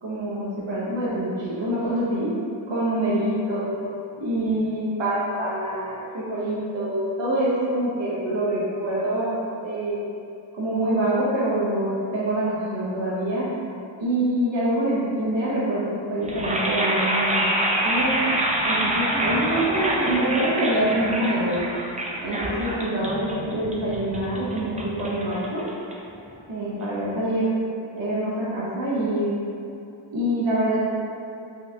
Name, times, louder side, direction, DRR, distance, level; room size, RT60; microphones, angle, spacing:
voice 1, 0.0-2.3 2.7-3.9 4.2-10.0 10.5-13.5 14.0-17.5 17.8-18.3 18.6-21.6 22.2-25.7 26.5-27.5 27.9-29.4 30.1-30.8, right 1 dB, 70° right, -8 dB, 0.7 m, -25 dB
sound 1, 16.2-26.3, right 1 dB, 20° right, 0.4 m, -26 dB
3.7 x 2.3 x 2.6 m, 2.6 s
wide cardioid pair, 45°, 45 cm